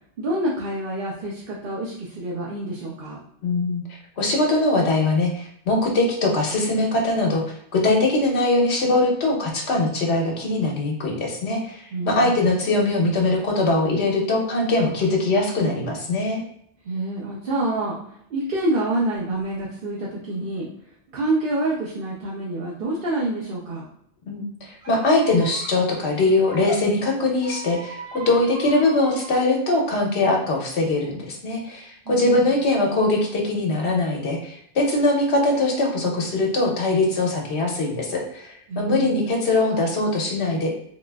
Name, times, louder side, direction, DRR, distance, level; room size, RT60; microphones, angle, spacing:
voice 1, 0.2-3.2 11.9-12.6 16.8-20.7 21.1-23.8 32.1-32.5 38.7-39.3, right 2 dB, 60° right, -5 dB, 0.8 m, -27 dB
voice 2, 3.4-16.4 24.3-40.7, left 2 dB, 80° left, 0 dB, 1.0 m, -22 dB
Squeak, 24.8-26.8 27.3-29.5, right 1 dB, 85° right, 1.5 m, -38 dB
3.7 x 2.4 x 2.3 m, 0.71 s
omnidirectional pair, 1.1 m